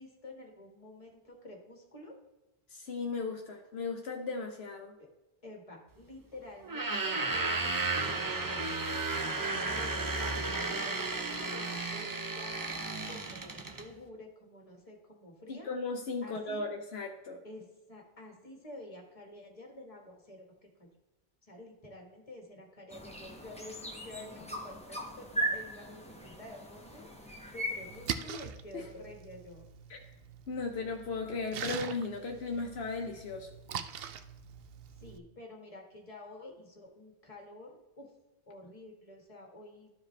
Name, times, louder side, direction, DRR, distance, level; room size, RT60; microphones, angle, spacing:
voice 1, 0.0-2.1 5.0-5.1 5.4-12.6 13.0-15.7 16.2-16.6 17.4-20.9 21.5-29.7 35.0-38.1 38.5-39.9, left 1 dB, 35° left, 1 dB, 1.7 m, -50 dB
voice 2, 2.7-4.9 15.5-17.4 28.7-28.8 29.9-30.0 30.5-33.5, left 4 dB, 75° left, 2 dB, 1.0 m, -36 dB
sound 1, 6.6-13.9, right 3 dB, 25° right, 0.5 m, -33 dB
sound 2, 22.9-28.1, right 1 dB, 5° left, 1.0 m, -38 dB
Splash splatter, 27.8-35.2, right 8 dB, 70° right, 0.8 m, -43 dB
13.0 x 4.9 x 3.2 m, 1.1 s
omnidirectional pair, 1.1 m